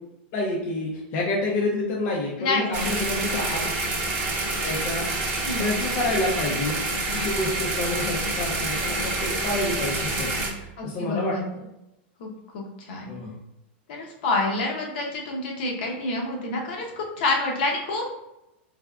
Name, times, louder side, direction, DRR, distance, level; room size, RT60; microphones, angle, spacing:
voice 1, 0.3-3.7 4.6-5.1 5.6-6.7 7.1-11.6 13.1-13.4, left 2 dB, 40° left, -3 dB, 0.6 m, -28 dB
voice 2, 2.4-3.3 5.4-5.7 10.8-11.5 12.2-13.1 13.9-18.1, left 2 dB, 60° left, 0 dB, 0.9 m, -28 dB
sound 1, 2.7-10.5, right 2 dB, 35° right, 0.7 m, -27 dB
3.4 x 3.4 x 2.3 m, 0.90 s
supercardioid pair, 145°, 6 cm